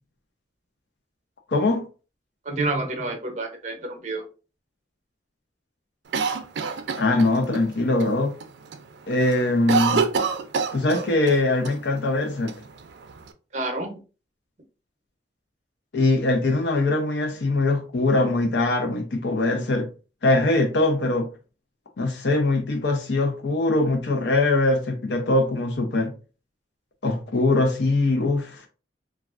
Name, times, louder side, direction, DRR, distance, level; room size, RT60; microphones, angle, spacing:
voice 1, 1.5-1.8 7.0-8.3 9.1-10.0 10.7-12.5 15.9-19.9 20.2-21.3 22.0-26.1 27.0-28.6, left 2 dB, 75° left, 0.6 m, -22 dB
voice 2, 2.4-4.2 13.5-14.0, right 2 dB, 40° right, 0.7 m, -29 dB
Cough, 6.1-7.6 8.0-8.1 8.4-8.8 9.1-11.4 11.6-11.7 12.5-13.3, right 5 dB, 75° right, 0.4 m, -26 dB
3.2 x 2.3 x 2.4 m
head